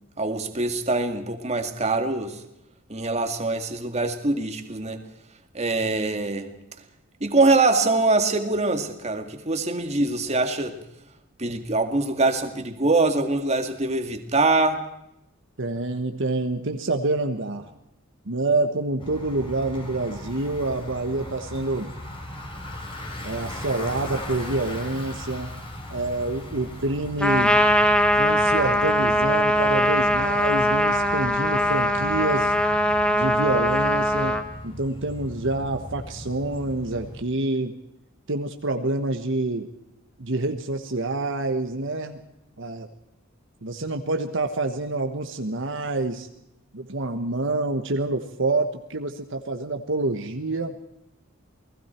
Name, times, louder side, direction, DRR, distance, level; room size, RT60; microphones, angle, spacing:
voice 1, 0.2-2.4 2.9-5.0 5.5-6.5 7.2-10.7 11.4-14.8, right 3 dB, 30° right, 6 dB, 2.1 m, -23 dB
voice 2, 15.6-17.7 18.3-21.9 23.2-25.6 25.9-27.6 28.1-32.5 33.1-34.4 34.6-37.8 38.3-39.7 40.2-42.2 42.6-42.9 43.6-46.3 46.7-50.8, right 2 dB, 65° right, 5 dB, 1.4 m, -27 dB
Bicycle, 19.0-37.2, left 1 dB, 25° left, 4.5 m, -38 dB
Trumpet, 27.2-34.4, equal, 5° left, 1.6 m, -21 dB
29.0 x 19.5 x 4.5 m, 0.84 s
head